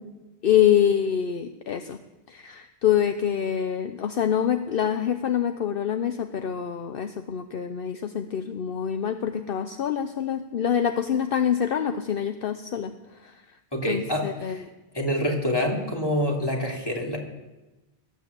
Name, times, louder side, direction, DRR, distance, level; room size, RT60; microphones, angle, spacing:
voice 1, 0.4-2.0 2.3-12.9 13.2-13.3 13.9-14.6, left 9 dB, 65° left, 8 dB, 0.9 m, -25 dB
voice 2, 13.7-14.6 14.9-17.2, equal, 25° left, -1 dB, 3.0 m, -26 dB
18.5 x 9.2 x 8.1 m, 1.1 s
omnidirectional pair, 1.0 m